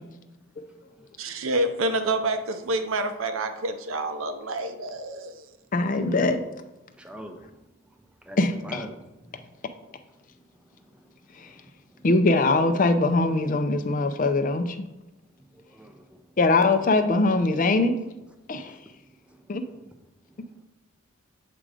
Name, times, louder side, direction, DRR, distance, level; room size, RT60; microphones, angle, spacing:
voice 1, 1.2-5.5, right 2 dB, 70° right, 0.6 m, -28 dB
voice 2, 5.7-6.4 8.4-8.8 11.4-11.5 12.0-14.9 16.4-17.9 18.5-18.7 19.5-19.6, left 2 dB, 40° left, 0.5 m, -22 dB
voice 3, 7.0-7.6 8.2-9.5 10.6-12.1 15.4-16.4 18.6-19.9 20.3-20.5, equal, 5° right, 0.5 m, -46 dB
7.7 x 3.8 x 4.8 m
head